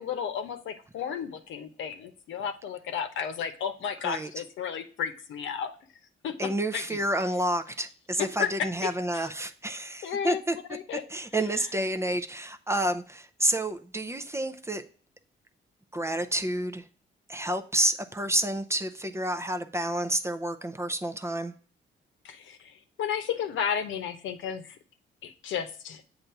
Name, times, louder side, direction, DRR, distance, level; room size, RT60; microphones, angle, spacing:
voice 1, 0.0-5.7 6.2-7.0 8.2-8.5 10.0-10.4 10.7-11.0 22.2-24.8 25.2-26.0, left 8 dB, 75° left, 0.9 m, -33 dB
voice 2, 6.4-10.6 11.1-14.8 15.9-16.9 17.3-21.5, right 1 dB, 15° right, 0.5 m, -29 dB
7.8 x 2.7 x 5.6 m
cardioid pair, 90°, 20 cm